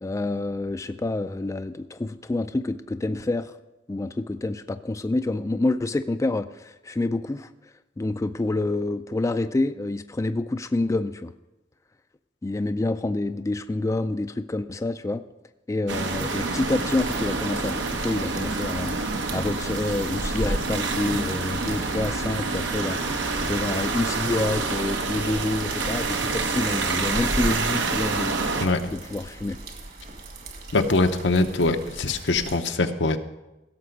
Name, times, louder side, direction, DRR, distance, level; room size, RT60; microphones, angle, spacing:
voice 1, 0.0-3.5 3.9-7.5 8.0-11.3 12.4-15.2 15.7-17.8 18.0-18.9 19.3-28.4 28.9-29.6, left 2 dB, 15° left, 9 dB, 0.3 m, -27 dB
sound 1, 15.9-28.7, right 3 dB, 90° right, 1.1 m, -27 dB
sound 2, 16.3-32.6, right 3 dB, 55° right, 1.8 m, -42 dB
voice 2, 28.6-28.9 30.7-33.2, left 3 dB, 80° left, 7 dB, 0.8 m, -23 dB
16.0 x 6.8 x 5.2 m, 0.99 s
head